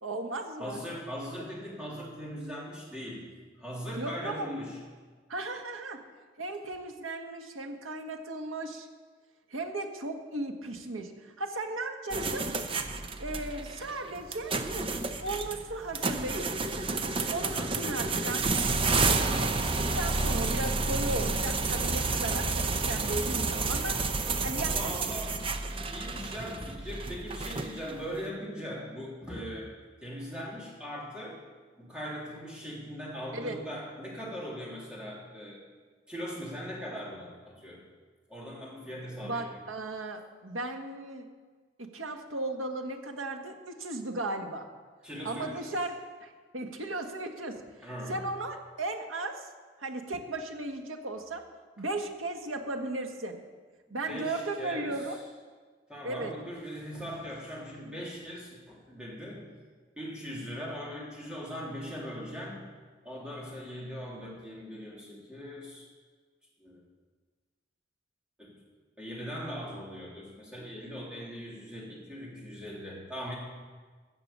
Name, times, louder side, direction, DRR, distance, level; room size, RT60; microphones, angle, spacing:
voice 1, 0.0-0.8 4.0-4.5 5.3-6.0 6.4-8.9 9.5-12.5 13.2-14.6 15.2-16.5 17.3-18.5 19.1-23.9 24.4-25.1 33.3-33.6 39.2-41.3 41.8-44.7 45.2-47.6 48.1-49.5 49.8-51.4 51.8-53.4 53.9-55.2 56.0-56.3, right 2 dB, 85° right, 4 dB, 1.5 m, -36 dB
voice 2, 0.6-3.3 3.6-4.8 17.5-17.8 24.5-29.7 30.0-31.4 31.8-35.6 36.1-37.8 38.3-39.6 45.0-45.7 47.8-48.2 53.9-55.2 55.9-59.5 60.0-62.7 63.0-65.9 66.6-66.8 68.4-68.6 69.0-73.4, equal, 5° right, -5 dB, 3.1 m, -40 dB
sound 1, 12.1-28.0, right 3 dB, 25° right, 0.7 m, -30 dB
15.5 x 6.9 x 7.4 m, 1.5 s
head